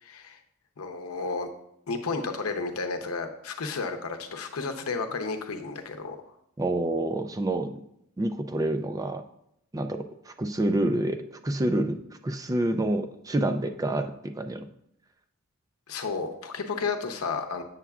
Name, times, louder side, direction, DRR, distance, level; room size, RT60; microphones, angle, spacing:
voice 1, 0.0-0.4 0.8-1.5 1.9-6.2 15.9-17.6, left 4 dB, 85° left, 6 dB, 0.7 m, -32 dB
voice 2, 6.6-7.7 8.2-9.2 9.7-14.6, right 1 dB, 15° right, 8 dB, 0.3 m, -28 dB
7.2 x 6.8 x 2.4 m, 0.76 s
head